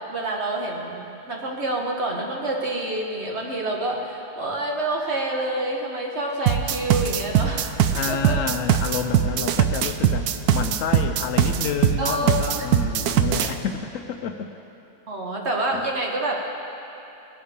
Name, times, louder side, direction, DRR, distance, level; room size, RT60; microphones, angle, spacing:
voice 1, 0.1-7.7 8.1-8.4 12.0-12.7 15.1-16.4, right 1 dB, 45° right, -1 dB, 1.6 m, -27 dB
sound 1, 6.5-13.5, right 9 dB, 80° right, 1.1 m, -21 dB
voice 2, 7.9-14.5 15.7-15.8, left 6 dB, 70° left, 6 dB, 0.9 m, -29 dB
19.5 x 10.5 x 3.7 m, 2.9 s
omnidirectional pair, 1.6 m